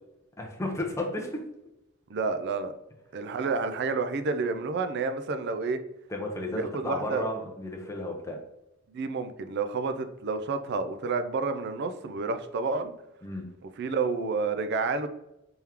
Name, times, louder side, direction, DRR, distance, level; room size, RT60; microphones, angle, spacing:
voice 1, 0.4-1.4 6.1-8.4 13.2-13.5, left 1 dB, 15° left, -1 dB, 0.6 m, -33 dB
voice 2, 2.1-2.7 3.1-5.8 6.5-7.3 8.9-12.9 13.6-15.1, right 4 dB, 55° right, 9 dB, 0.4 m, -30 dB
3.5 x 3.5 x 2.9 m, 0.89 s
head